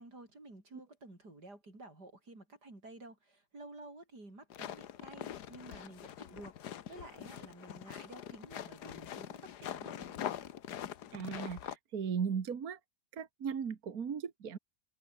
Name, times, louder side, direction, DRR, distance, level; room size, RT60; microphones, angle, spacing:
voice 1, 0.0-10.2, right 2 dB, 85° right, 8.0 m, -52 dB
sound 1, 4.5-11.8, left 10 dB, 80° left, 1.6 m, -44 dB
voice 2, 11.1-12.8 13.1-14.6, right 7 dB, 65° right, 2.0 m, -37 dB
omnidirectional pair, 1.7 m